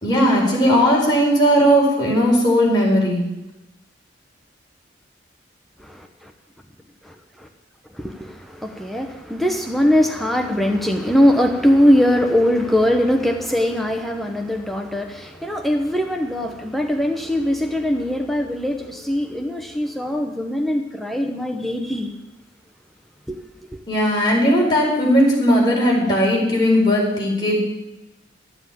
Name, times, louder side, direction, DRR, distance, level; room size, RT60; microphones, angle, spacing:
voice 1, 0.0-3.2 23.9-27.6, equal, 25° left, 4.7 m, -17 dB
voice 2, 8.0-22.1 23.3-23.4, equal, ahead, 0.9 m, -21 dB
13.0 x 8.0 x 9.2 m
head